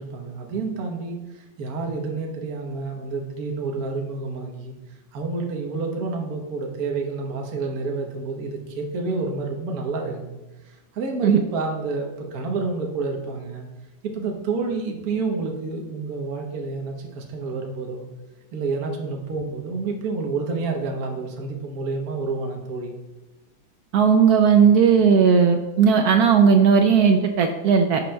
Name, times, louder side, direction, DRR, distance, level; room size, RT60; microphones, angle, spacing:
voice 1, 0.0-4.7 5.1-10.4 10.6-13.6 14.0-18.1 18.5-23.0, right 4 dB, 55° right, 1 dB, 1.4 m, -29 dB
voice 2, 23.9-28.0, right 6 dB, 75° right, 5 dB, 0.9 m, -16 dB
11.0 x 6.9 x 2.3 m, 1.0 s
omnidirectional pair, 2.1 m